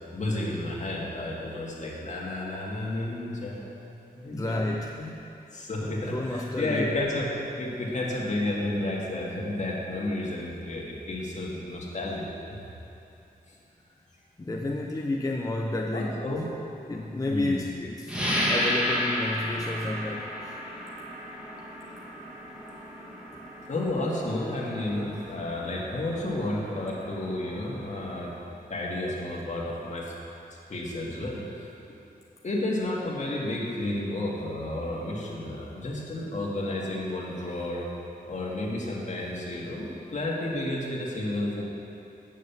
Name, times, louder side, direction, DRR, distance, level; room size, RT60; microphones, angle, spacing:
voice 1, 0.1-3.8 4.1-5.1 5.5-7.3 7.6-12.6 13.5-13.6 15.9-16.5 17.3-17.6 23.7-28.3 28.7-30.1 30.7-31.7 32.4-37.9 38.3-41.6, left 1 dB, 50° left, -4 dB, 1.9 m, -31 dB
voice 2, 4.3-5.2 6.1-6.9 14.4-16.2 16.9-18.1 18.5-20.6, left 2 dB, 20° left, 1 dB, 0.5 m, -31 dB
sound 1, 18.1-28.4, equal, 5° right, 1.7 m, -33 dB
8.6 x 6.5 x 7.1 m, 2.8 s
wide cardioid pair, 125°, 16 cm